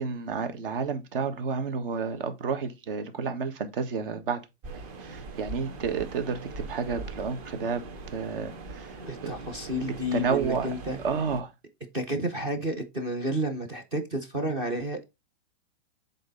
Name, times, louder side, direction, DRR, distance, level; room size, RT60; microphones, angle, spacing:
voice 1, 0.0-4.4 4.7-7.8 8.1-9.0 9.2-9.3 10.1-10.7 11.0-11.5, right 5 dB, 55° right, 1.6 m, -30 dB
sound 1, 4.6-11.4, right 3 dB, 35° right, 1.5 m, -41 dB
voice 2, 9.1-11.0 11.9-15.0, equal, 15° right, 0.5 m, -31 dB
7.8 x 4.0 x 3.9 m
supercardioid pair, 170°, 33 cm